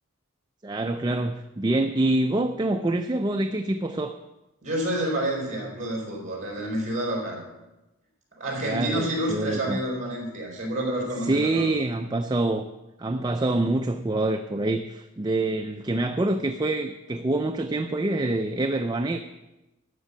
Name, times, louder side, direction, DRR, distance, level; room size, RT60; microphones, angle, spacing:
voice 1, 0.6-4.2 8.6-9.8 11.2-12.7 13.0-19.2, right 2 dB, 20° right, 6 dB, 0.4 m, -26 dB
voice 2, 4.6-7.4 8.4-11.7, right 1 dB, 35° right, -2 dB, 4.9 m, -29 dB
12.5 x 6.1 x 8.4 m, 1.0 s
head